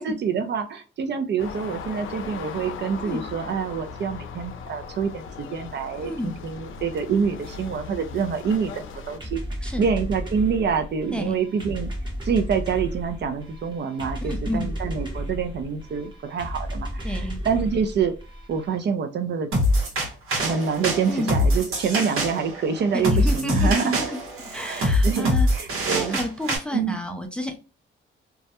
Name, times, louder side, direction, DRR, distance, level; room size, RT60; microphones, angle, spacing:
voice 1, 0.0-11.9 12.2-18.1 18.5-19.5 20.4-24.1 24.6-26.2 26.7-27.0, right 6 dB, 55° right, 8 dB, 0.5 m, -26 dB
sound 1, 1.4-9.2, left 5 dB, 70° left, 0.5 m, -38 dB
voice 2, 6.0-6.3 9.6-9.8 11.1-11.4 14.2-14.7 17.0-17.4 21.1-21.3 22.9-24.2 24.5-25.5 25.9-27.6, left 1 dB, 5° left, 4 dB, 0.4 m, -30 dB
sound 2, 9.2-18.8, equal, 20° right, 0.8 m, -34 dB
sound 3, 19.5-26.6, left 1 dB, 85° right, 1.0 m, -24 dB
2.3 x 2.1 x 2.8 m, 0.33 s
cardioid pair, 95°, 21 cm